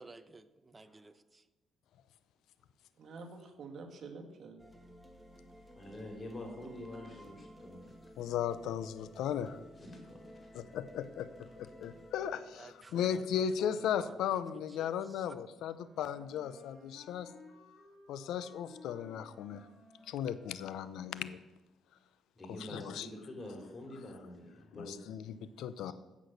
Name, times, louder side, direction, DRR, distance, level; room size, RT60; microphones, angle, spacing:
voice 1, 0.0-1.5 12.5-15.4, right 3 dB, 25° right, 12 dB, 0.9 m, -54 dB
voice 2, 3.0-4.7 6.6-6.7 13.7-13.8 25.8-25.9, right 4 dB, 60° right, 3 dB, 2.1 m, -48 dB
sound 1, 4.6-14.7, equal, 5° left, 1.8 m, -56 dB
voice 3, 5.5-8.1 9.7-10.6 22.4-25.2, left 1 dB, 35° left, 1 dB, 4.3 m, -47 dB
voice 4, 8.2-9.6 10.5-17.3 18.1-19.7 20.1-21.4 22.7-23.1 24.7-25.9, left 9 dB, 85° left, 14 dB, 0.7 m, -36 dB
Wind instrument woodwind instrument, 15.6-21.1, left 3 dB, 50° left, 4.0 m, -58 dB
16.0 x 6.3 x 6.7 m, 1.1 s
cardioid pair, 90°, 0 cm